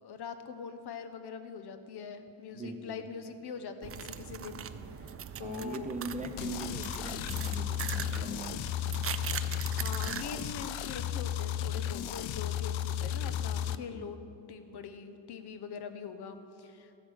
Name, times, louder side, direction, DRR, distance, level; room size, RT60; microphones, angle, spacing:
voice 1, 0.0-4.7 5.0-5.9 9.7-14.2 14.5-16.9, left 6 dB, 60° left, 9 dB, 1.1 m, -43 dB
voice 2, 2.5-3.1 5.4-8.6 13.7-14.1, right 2 dB, 15° right, 6 dB, 0.8 m, -41 dB
sound 1, 3.8-10.7, right 8 dB, 35° right, 0.4 m, -41 dB
sound 2, 6.4-13.7, left 10 dB, 75° left, 0.6 m, -34 dB
13.5 x 8.5 x 6.4 m, 2.6 s
cardioid pair, 130°, 46 cm